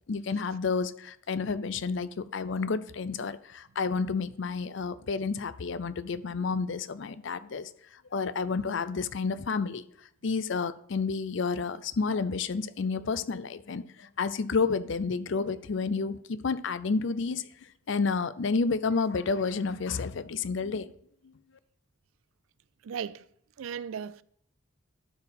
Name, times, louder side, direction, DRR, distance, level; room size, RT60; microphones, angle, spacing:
voice 1, 0.1-9.8 10.2-20.9 21.2-21.3, left 4 dB, 60° left, 0.5 m, -30 dB
voice 2, 22.8-23.3 23.6-24.2, right 7 dB, 80° right, 0.4 m, -36 dB
12.0 x 4.7 x 5.2 m
head